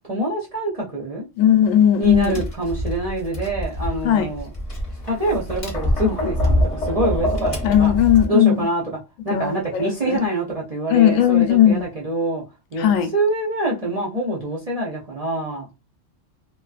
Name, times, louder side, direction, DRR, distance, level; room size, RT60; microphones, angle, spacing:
voice 1, 0.1-1.3 2.0-4.5 5.0-7.9 8.3-9.0 9.2-12.4 12.7-15.7, right 1 dB, 40° right, 0.6 m, -25 dB
voice 2, 1.4-2.3 4.0-4.3 7.6-8.6 9.3-10.2 10.9-11.8 12.8-13.1, left 10 dB, 85° left, 1.0 m, -17 dB
Tap, 2.0-8.2, equal, 35° left, 0.7 m, -25 dB
2.5 x 2.2 x 2.4 m
omnidirectional pair, 1.3 m